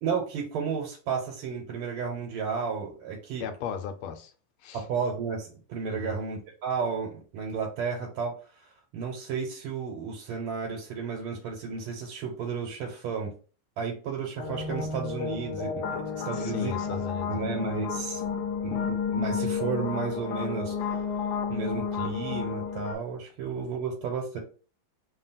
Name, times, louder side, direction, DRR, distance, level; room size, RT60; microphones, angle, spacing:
voice 1, 0.0-3.4 4.7-13.3 13.8-17.0 17.3-18.2 18.6-18.8 19.1-21.0 21.5-24.4, right 5 dB, 90° right, 1.7 m, -33 dB
voice 2, 3.4-4.3 4.6-4.8 5.9-6.2 16.3-17.4, left 7 dB, 90° left, 1.5 m, -36 dB
sound 1, 14.4-23.0, left 6 dB, 70° left, 1.0 m, -31 dB
3.7 x 2.3 x 4.0 m
omnidirectional pair, 2.3 m